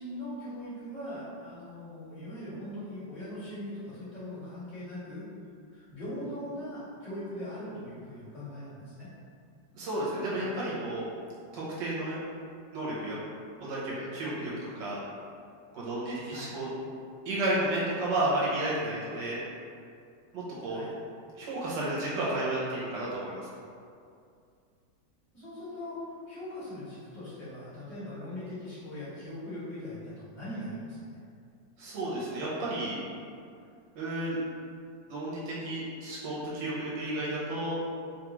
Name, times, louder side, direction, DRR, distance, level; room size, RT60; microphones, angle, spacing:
voice 1, 0.0-5.3 5.7-9.1 16.3-16.5 20.7-20.9 25.3-31.0, left 1 dB, 10° left, -12 dB, 1.1 m, -40 dB
voice 2, 9.7-11.0 11.5-12.2 12.7-13.2 13.6-15.0 15.7-16.7 17.2-19.4 20.3-20.8 21.4-23.3 31.8-33.0 33.9-34.4 35.1-37.8, right 1 dB, 80° right, -7 dB, 1.5 m, -32 dB
3.2 x 2.3 x 3.0 m, 2.4 s
omnidirectional pair, 1.9 m